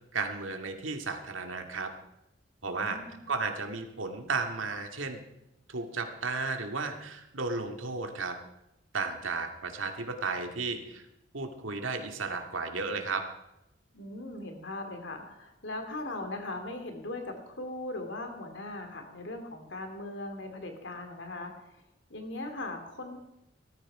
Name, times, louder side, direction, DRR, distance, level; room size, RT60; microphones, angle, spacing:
voice 1, 0.1-1.9 2.6-3.0 3.3-5.2 5.7-8.4 8.9-11.0 11.3-13.3, right 4 dB, 85° right, 5 dB, 2.2 m, -34 dB
voice 2, 2.7-3.2 13.9-21.7 22.1-23.2, left 2 dB, 65° left, 5 dB, 2.8 m, -39 dB
18.5 x 14.0 x 4.9 m, 0.89 s
head